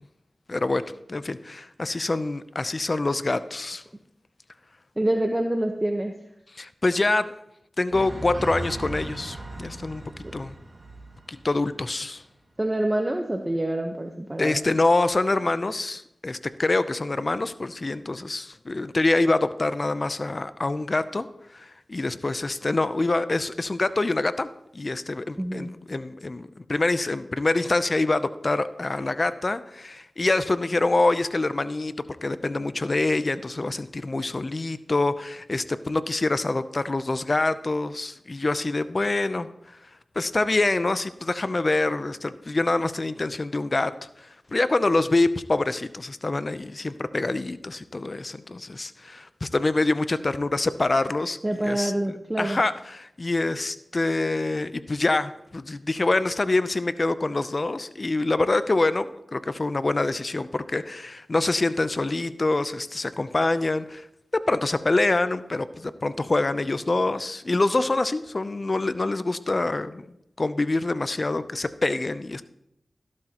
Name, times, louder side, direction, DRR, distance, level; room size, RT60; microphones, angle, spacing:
voice 1, 0.5-0.8 1.1-3.8 6.5-7.4 7.8-10.0 10.3-10.5 11.3-12.2 14.4-21.3 21.5-31.9 32.2-39.5 40.2-51.9 52.4-64.1 64.3-70.1 70.4-72.4, left 2 dB, 45° left, 13 dB, 0.6 m, -25 dB
voice 2, 5.0-6.1 12.6-14.6 25.4-25.7 51.4-52.6, right 1 dB, 25° right, 3 dB, 1.1 m, -26 dB
sound 1, 7.9-11.8 12.1-12.2, right 1 dB, 45° right, 2.2 m, -37 dB
14.5 x 12.0 x 3.0 m, 0.79 s
cardioid pair, 40°, 0 cm